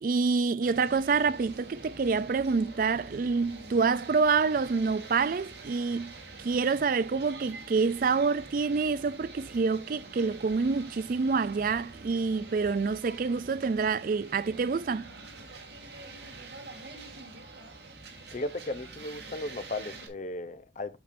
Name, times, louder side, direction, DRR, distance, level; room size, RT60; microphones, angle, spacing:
voice 1, 0.0-6.1 6.4-15.1, right 4 dB, 45° right, 0.4 m, -27 dB
sound 1, 0.6-20.1, right 3 dB, 60° right, 2.6 m, -46 dB
voice 2, 18.3-21.0, left 2 dB, 40° left, 0.7 m, -36 dB
8.8 x 6.6 x 2.6 m
head